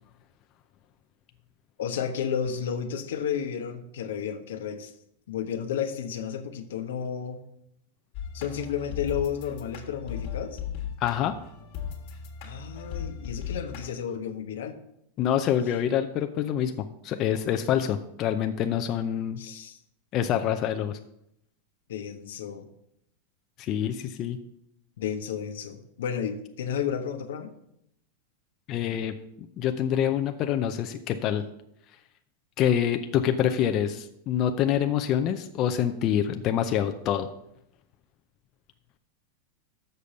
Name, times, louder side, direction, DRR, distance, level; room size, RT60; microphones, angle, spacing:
voice 1, 1.8-4.9 5.3-7.4 8.3-10.6 12.4-14.8 19.4-19.8 21.9-22.7 25.0-27.5, left 8 dB, 85° left, 7 dB, 1.0 m, -32 dB
sound 1, 8.1-13.9, left 7 dB, 55° left, 1.5 m, -37 dB
voice 2, 11.0-11.3 15.2-19.4 20.1-21.0 23.6-24.4 28.7-29.1 29.6-31.4 32.6-37.3, left 10 dB, 40° left, 7 dB, 0.5 m, -26 dB
6.8 x 5.0 x 6.9 m, 0.77 s
supercardioid pair, 140°, 0 cm